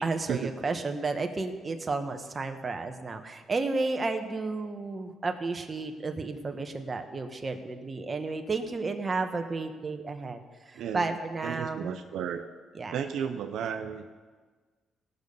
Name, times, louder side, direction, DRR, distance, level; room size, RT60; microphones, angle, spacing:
voice 1, 0.0-10.4 10.7-12.0 12.7-12.9, right 3 dB, 30° right, 6 dB, 1.2 m, -32 dB
voice 2, 10.8-11.1 11.4-12.4 12.9-14.1, right 8 dB, 80° right, 6 dB, 0.7 m, -33 dB
17.0 x 6.7 x 5.5 m, 1.4 s
cardioid pair, 90°, 0 cm